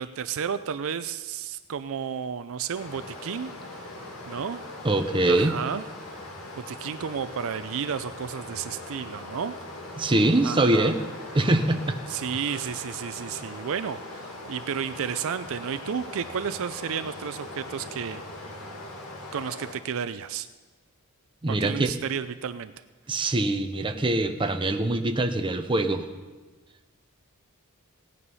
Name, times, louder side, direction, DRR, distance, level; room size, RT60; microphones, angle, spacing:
voice 1, 0.0-3.5 4.3-4.6 5.3-5.8 6.6-9.6 10.4-11.0 12.1-18.2 19.3-20.5 21.6-22.7, right 7 dB, 65° right, 12 dB, 0.5 m, -32 dB
Stream, 2.7-19.7, left 2 dB, 70° left, 2.2 m, -40 dB
voice 2, 4.8-5.6 10.0-11.0 11.3-12.0 21.4-21.9 23.1-26.1, right 2 dB, 20° right, 6 dB, 0.8 m, -23 dB
17.0 x 9.7 x 5.5 m, 1.3 s
head